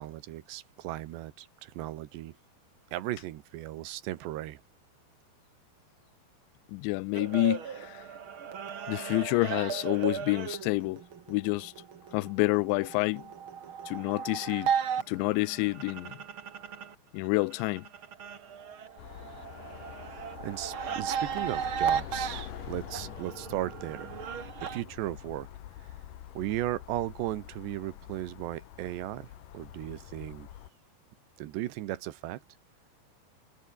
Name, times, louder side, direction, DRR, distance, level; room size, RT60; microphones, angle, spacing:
voice 1, 0.0-2.3 2.9-4.6 20.1-24.1 24.7-25.5 26.3-30.5 31.4-32.4, right 15 dB, 75° right, 3.4 m, -36 dB
voice 2, 6.7-8.0 8.9-11.0 11.3-11.7 12.1-13.3 13.9-14.7 15.1-16.2 17.1-17.9, left 23 dB, 85° left, 2.8 m, -28 dB
sound 1, 7.1-16.9 17.3-24.8, right 7 dB, 55° right, 1.4 m, -36 dB
sound 2, 19.0-30.7, left 12 dB, 60° left, 2.4 m, -46 dB
omnidirectional pair, 5.2 m